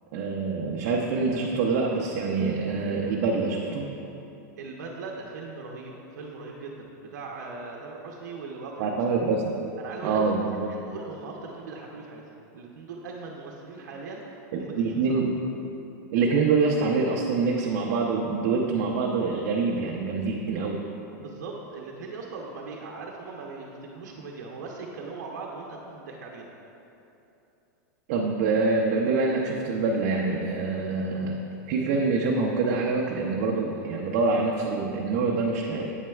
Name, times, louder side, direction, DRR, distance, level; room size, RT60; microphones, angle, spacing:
voice 1, 0.1-3.9 8.8-9.6 10.0-10.7 14.5-15.4 16.1-20.8 28.1-31.4 31.7-35.9, right 4 dB, 50° right, -1 dB, 0.6 m, -25 dB
voice 2, 4.6-9.0 9.8-12.2 12.5-15.2 21.2-26.5, right 3 dB, 85° right, -1 dB, 0.7 m, -40 dB
8.0 x 7.5 x 2.3 m, 2.9 s
supercardioid pair, 155°, 9 cm